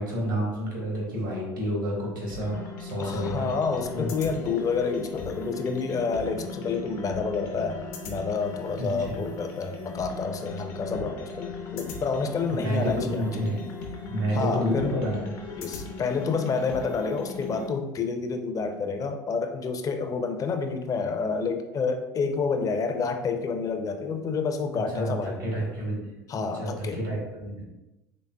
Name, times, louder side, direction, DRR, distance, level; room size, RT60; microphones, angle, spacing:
voice 1, 0.0-3.5 3.9-4.1 8.8-9.1 12.6-13.6 14.1-15.2 24.9-26.1 26.5-27.6, equal, 90° right, -4 dB, 1.4 m, -29 dB
sound 1, 2.3-17.7, left 3 dB, 70° left, 0.7 m, -38 dB
voice 2, 3.0-13.5 14.3-14.9 15.6-25.5 26.3-27.0, left 4 dB, 35° left, 6 dB, 0.5 m, -29 dB
3.9 x 3.5 x 2.2 m, 1.0 s
hypercardioid pair, 75°, 10 cm